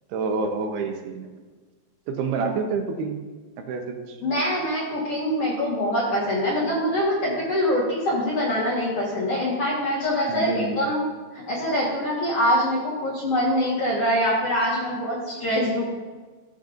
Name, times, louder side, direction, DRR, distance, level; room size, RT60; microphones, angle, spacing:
voice 1, 0.1-1.3 2.1-3.2 3.7-4.2 10.3-10.8, right 4 dB, 80° right, 4 dB, 2.9 m, -28 dB
voice 2, 4.2-11.0 11.3-15.8, equal, 55° left, -7 dB, 1.8 m, -24 dB
14.5 x 6.5 x 2.5 m, 1.3 s
omnidirectional pair, 4.7 m